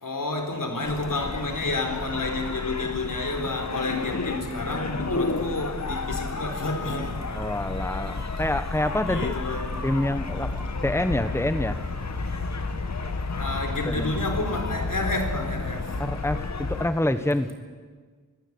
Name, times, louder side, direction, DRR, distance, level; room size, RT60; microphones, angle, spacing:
voice 1, 0.0-7.2 8.0-8.1 8.8-9.7 13.4-15.9, left 2 dB, 80° left, 4 dB, 4.2 m, -30 dB
sound 1, 0.8-16.9, left 3 dB, 55° left, 1.6 m, -31 dB
voice 2, 7.3-9.3 9.8-11.8 13.9-14.1 16.0-17.5, left 1 dB, 10° left, 10 dB, 1.4 m, -27 dB
24.0 x 16.5 x 9.7 m, 1.5 s
cardioid pair, 40°, 32 cm